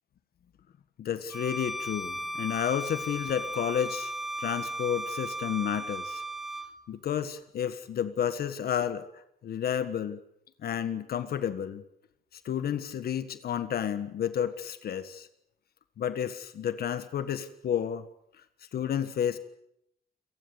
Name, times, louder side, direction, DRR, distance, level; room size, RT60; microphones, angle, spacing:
voice 1, 1.0-4.1 4.4-6.2 6.9-10.2 10.6-11.8 12.4-15.3 16.0-18.1 18.7-19.4, left 9 dB, 70° left, 11 dB, 1.5 m, -31 dB
Bowed string instrument, 1.3-6.7, right 1 dB, ahead, 1.9 m, -36 dB
28.5 x 19.0 x 8.1 m, 0.76 s
wide cardioid pair, 165°, 16 cm